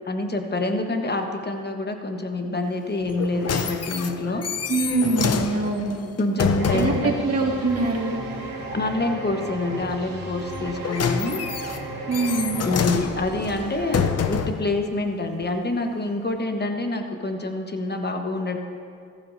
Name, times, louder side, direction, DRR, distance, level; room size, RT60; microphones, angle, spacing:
voice 1, 0.0-4.4 6.2-7.1 8.7-11.4 12.7-18.6, left 2 dB, 30° left, 4 dB, 1.4 m, -26 dB
sound 1, 3.1-7.1 10.5-14.7 15.4-15.5, left 6 dB, 50° left, 0.7 m, -27 dB
voice 2, 4.7-6.0 6.7-8.2 12.1-12.6, right 3 dB, 45° right, 0 dB, 2.1 m, -24 dB
sound 2, 6.6-14.1, right 3 dB, 85° right, 1.7 m, -35 dB
14.5 x 12.0 x 2.8 m, 2.3 s
cardioid pair, 60°, 33 cm